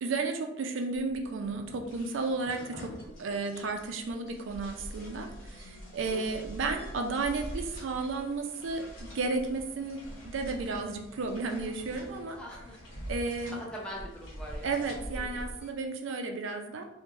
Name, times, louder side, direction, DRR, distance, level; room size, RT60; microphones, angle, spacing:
voice 1, 0.0-12.4 13.1-13.6 14.6-16.8, right 3 dB, 70° right, 5 dB, 0.4 m, -33 dB
sound 1, 0.9-15.7, equal, 75° left, 1.0 m, -45 dB
voice 2, 6.1-6.4 12.4-12.8 13.5-14.8 15.1-15.4, equal, 5° left, -4 dB, 0.5 m, -42 dB
3.0 x 2.1 x 2.5 m, 0.85 s
head